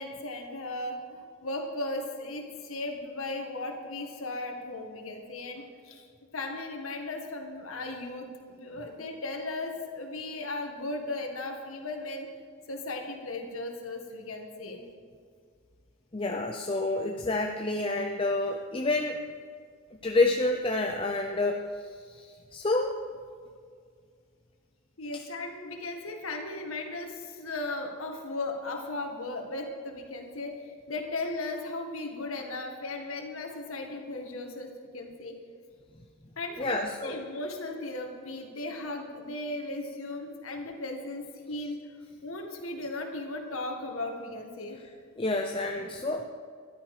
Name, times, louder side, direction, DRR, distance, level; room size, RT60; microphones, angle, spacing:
voice 1, 0.0-6.1 6.3-12.3 12.7-14.8 25.0-35.3 36.4-41.8 42.2-44.8, left 2 dB, 85° left, 3 dB, 1.9 m, -36 dB
voice 2, 16.1-19.2 20.0-21.6 22.2-22.9 36.6-37.2 45.2-46.3, left 2 dB, 25° left, 3 dB, 0.6 m, -28 dB
14.5 x 12.0 x 5.0 m, 2.1 s
head